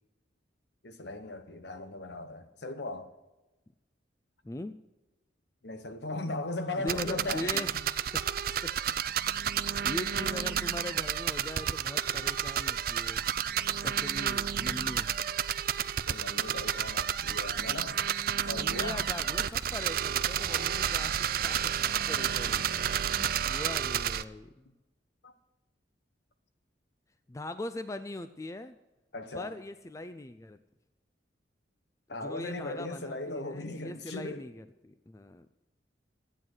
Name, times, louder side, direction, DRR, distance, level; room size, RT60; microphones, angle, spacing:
voice 1, 0.8-3.1 5.6-7.6 16.1-18.0 18.4-19.0 25.2-25.3 29.1-29.5 32.1-34.4, left 2 dB, 65° left, 1.1 m, -38 dB
voice 2, 4.4-4.8 6.8-7.7 8.1-8.7 9.3-13.3 13.8-15.1 18.6-24.5 27.3-28.8 29.3-30.6 32.1-35.5, left 1 dB, 15° left, 0.4 m, -41 dB
sound 1, 6.9-24.2, right 9 dB, 50° right, 0.4 m, -31 dB
13.5 x 9.0 x 6.2 m
head